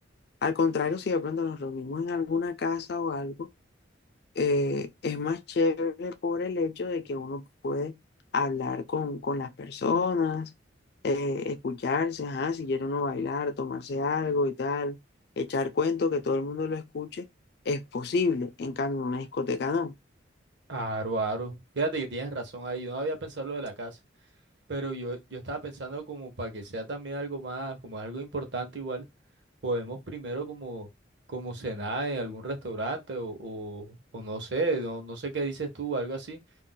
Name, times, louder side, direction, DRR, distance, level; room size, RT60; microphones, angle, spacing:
voice 1, 0.4-3.5 4.4-8.0 8.3-10.5 11.0-15.0 15.4-17.3 17.7-19.9, left 4 dB, 55° left, 0.4 m, -29 dB
voice 2, 20.7-24.0 24.7-29.1 29.6-30.9 31.3-36.4, right 2 dB, 65° right, 0.8 m, -33 dB
2.5 x 2.1 x 3.8 m
head